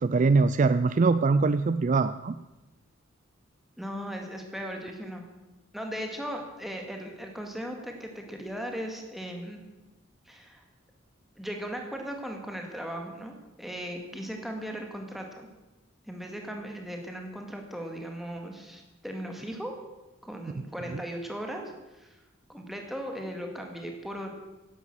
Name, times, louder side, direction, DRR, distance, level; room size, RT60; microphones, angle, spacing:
voice 1, 0.0-2.3, right 4 dB, 40° right, 13 dB, 0.4 m, -23 dB
voice 2, 3.8-5.2 5.7-9.7 10.3-10.6 11.4-15.5 16.0-19.8 20.2-22.2 22.5-24.3, equal, ahead, 2 dB, 2.1 m, -37 dB
11.0 x 11.0 x 7.6 m, 1.1 s
head